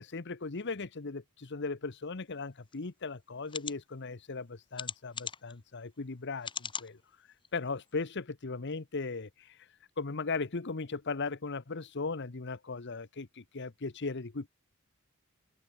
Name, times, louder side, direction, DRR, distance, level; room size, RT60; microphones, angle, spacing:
voice 1, 0.0-7.0 7.5-9.7 10.0-14.5, left 4 dB, 55° left, 1.0 m, -37 dB
sound 1, 2.7-2.8 3.5-3.7 4.7-5.5 6.4-6.9 7.4-7.5 7.9-8.0, left 6 dB, 25° left, 1.9 m, -38 dB
open air
head